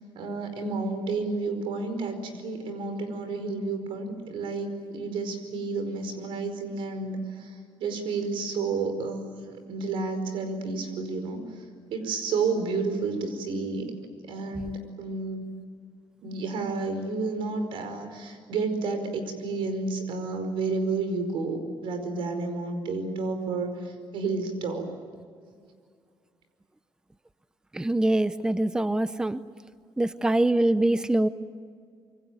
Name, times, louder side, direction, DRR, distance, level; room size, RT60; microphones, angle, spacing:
voice 1, 0.1-11.6 11.9-13.9 14.3-15.5 16.2-24.8, right 3 dB, 85° right, 8 dB, 5.0 m, -31 dB
voice 2, 27.7-29.4 30.0-31.3, right 1 dB, 10° right, 13 dB, 0.7 m, -24 dB
26.5 x 23.5 x 9.4 m, 2.1 s
cardioid pair, 125°, 9 cm